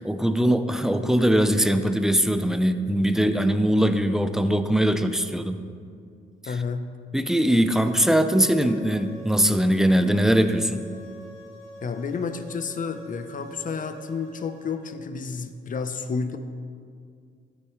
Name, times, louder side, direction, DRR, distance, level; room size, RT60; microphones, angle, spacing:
voice 1, 0.0-5.6 6.4-6.6 7.1-10.8, equal, ahead, 9 dB, 0.5 m, -21 dB
voice 2, 6.5-6.9 11.8-16.4, left 5 dB, 40° left, 9 dB, 0.7 m, -30 dB
sound 1, 7.7-14.9, equal, 80° right, 1.9 m, -45 dB
12.5 x 8.4 x 3.1 m, 2.3 s
cardioid pair, 90°, 20 cm